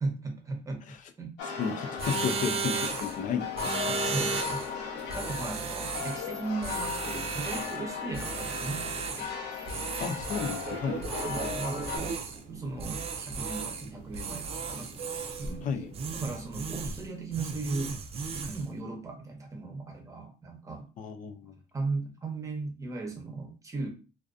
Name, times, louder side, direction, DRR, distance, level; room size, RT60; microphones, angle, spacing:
voice 1, 0.0-1.3 3.9-4.6 5.1-9.3 11.2-14.9 15.4-15.7 16.1-18.0 18.3-20.9 21.7-23.9, right 3 dB, 20° right, 0.7 m, -37 dB
sound 1, 1.4-12.0, left 6 dB, 85° left, 0.7 m, -36 dB
voice 2, 1.6-4.0 10.0-11.1 15.6-15.9 21.0-21.6, left 6 dB, 50° left, 0.4 m, -33 dB
sound 2, 2.0-3.2 3.5-4.7 5.1-6.2 6.6-7.8 8.1-9.3 9.7-10.7 11.0-12.4 12.8-13.9 14.1-15.6 15.9-17.1 17.3-18.6, right 5 dB, 35° right, 0.4 m, -35 dB
Fixed-wing aircraft airplane, 10.6-17.0, right 4 dB, 75° right, 0.6 m, -42 dB
2.4 x 2.3 x 2.4 m
cardioid pair, 110°, 17 cm